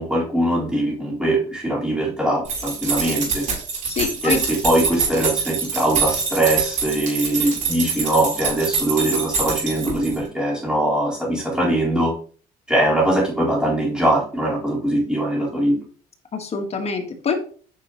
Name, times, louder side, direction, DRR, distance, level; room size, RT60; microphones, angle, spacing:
voice 1, 0.0-3.5 4.2-12.1 12.7-15.8, right 1 dB, 5° right, -6 dB, 4.1 m, -21 dB
sound 1, 2.4-10.2, right 5 dB, 50° right, 4.0 m, -25 dB
voice 2, 3.9-4.4 16.3-17.4, left 5 dB, 40° left, 5 dB, 1.6 m, -25 dB
9.1 x 5.4 x 3.0 m, 0.43 s
cardioid pair, 110°, 17 cm